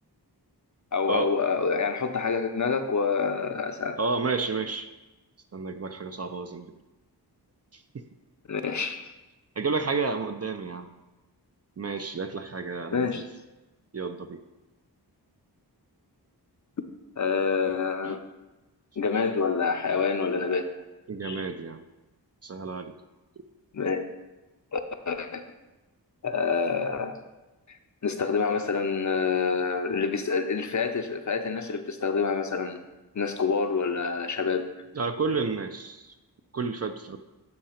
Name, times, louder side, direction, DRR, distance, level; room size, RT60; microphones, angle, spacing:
voice 1, 0.9-4.0 8.5-9.0 12.9-13.2 17.2-18.2 19.0-20.7 21.2-21.4 23.7-24.0 24.7-24.8 25.1-25.4 26.2-27.2 28.0-32.8 33.1-34.7, left 5 dB, 45° left, 7 dB, 0.6 m, -27 dB
voice 2, 4.0-4.9 5.5-6.8 7.7-8.0 9.6-10.9 11.8-13.2 13.9-14.4 18.0-18.1 21.1-21.8 22.4-22.9 34.9-36.1 36.5-37.2, right 4 dB, 40° right, 8 dB, 0.4 m, -31 dB
7.8 x 2.8 x 5.7 m, 1.1 s
wide cardioid pair, 55°, 41 cm